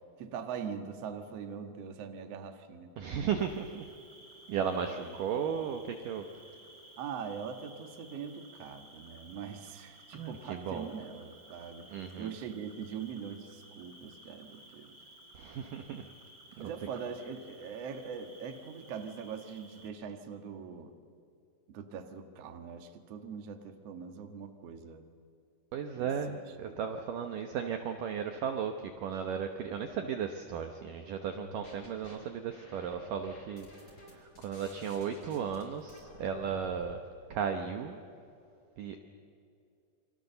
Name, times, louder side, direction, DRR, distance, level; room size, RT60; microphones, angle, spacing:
voice 1, 0.2-2.9 4.6-5.2 5.5-5.8 7.0-11.9 12.2-15.0 15.4-15.5 16.6-20.9 21.7-25.0 25.9-26.9, right 6 dB, 55° right, 6 dB, 1.9 m, -42 dB
voice 2, 3.0-3.8 4.5-6.3 10.1-10.9 11.9-12.3 15.3-16.0 25.7-33.7 34.1-37.0 37.3-38.0 38.8-39.0, right 7 dB, 70° right, 5 dB, 2.2 m, -35 dB
Cricket, 3.3-19.9, right 1 dB, 30° right, 3.6 m, -56 dB
sound 1, 31.3-32.2 32.5-36.9, left 2 dB, 20° left, 4.9 m, -52 dB
28.5 x 24.5 x 6.8 m, 2.5 s
omnidirectional pair, 4.9 m